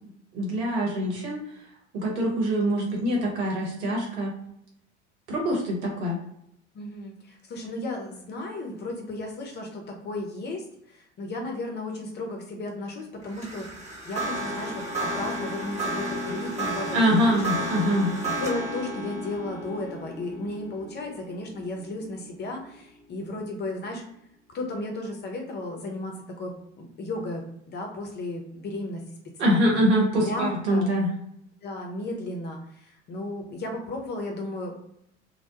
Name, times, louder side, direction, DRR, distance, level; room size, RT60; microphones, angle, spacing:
voice 1, 0.3-1.4 1.9-4.3 5.3-6.2 16.9-18.1 29.4-31.1, equal, 65° right, -1 dB, 1.0 m, -24 dB
voice 2, 6.7-17.5 18.2-24.0 24.5-29.0 29.4-29.8 30.2-30.9 31.6-34.7, left 2 dB, 30° left, 2 dB, 0.6 m, -34 dB
sound 1, 13.2-22.6, right 1 dB, 20° right, 1.0 m, -33 dB
2.1 x 2.1 x 2.8 m, 0.76 s
figure-of-eight pair, 70°, 36 cm